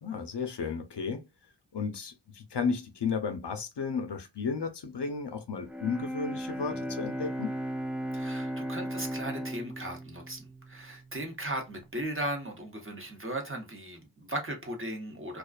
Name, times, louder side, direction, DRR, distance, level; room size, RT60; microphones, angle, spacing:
voice 1, 0.0-1.3 1.7-7.5, left 5 dB, 60° left, 0.6 m, -33 dB
Bowed string instrument, 5.6-11.6, right 1 dB, 5° right, 0.3 m, -36 dB
voice 2, 8.1-15.4, right 1 dB, 25° right, 0.9 m, -37 dB
2.4 x 2.3 x 2.3 m
wide cardioid pair, 45°, 47 cm